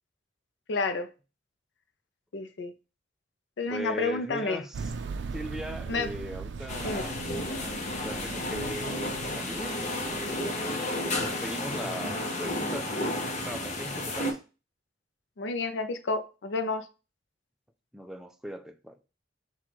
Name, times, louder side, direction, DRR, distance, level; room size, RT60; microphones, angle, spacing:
voice 1, 0.7-1.1 2.3-2.7 3.6-4.6 5.9-6.1 6.8-7.0 15.4-16.9, left 3 dB, 80° left, 0.5 m, -30 dB
voice 2, 3.7-4.9 5.3-7.1 7.4-9.8 10.3-14.4 17.9-19.0, equal, 5° right, 0.3 m, -39 dB
sound 1, 4.7-10.8 11.3-11.4, right 4 dB, 75° right, 0.4 m, -40 dB
sound 2, 6.7-14.3, left 1 dB, 40° left, 0.8 m, -32 dB
4.5 x 2.3 x 4.1 m
head